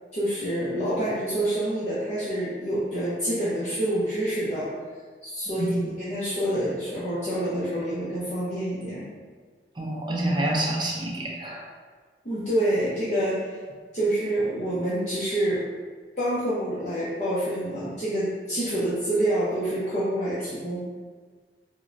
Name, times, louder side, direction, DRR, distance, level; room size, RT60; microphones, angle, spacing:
voice 1, 0.1-4.7 5.2-9.1 12.2-13.5 13.9-15.6 16.2-20.9, right 1 dB, 40° left, -10 dB, 0.6 m, -27 dB
voice 2, 9.8-11.6, right 1 dB, 25° right, -2 dB, 0.5 m, -27 dB
4.1 x 2.0 x 2.5 m, 1.5 s
head